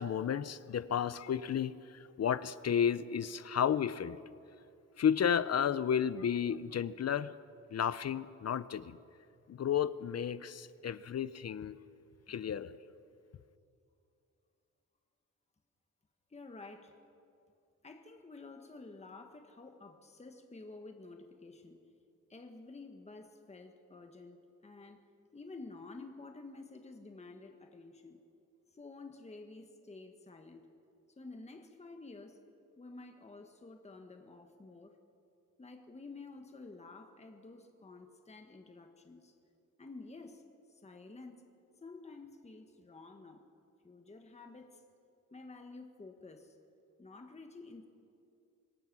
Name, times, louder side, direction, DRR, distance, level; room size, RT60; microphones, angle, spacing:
voice 1, 0.0-4.2 5.0-7.3 7.7-9.0 9.5-11.8 12.3-12.8, left 8 dB, 50° left, 16 dB, 0.6 m, -32 dB
voice 2, 16.3-17.0 17.8-21.8 22.3-25.0 25.3-28.2 28.7-30.7 31.2-32.4 32.8-35.0 35.6-39.3 39.8-40.4 40.7-41.4 41.8-43.4 43.8-44.8 45.3-46.6 47.0-47.9, left 3 dB, 20° left, 5 dB, 1.4 m, -51 dB
26.0 x 21.0 x 6.1 m, 2.6 s
wide cardioid pair, 150°, 32 cm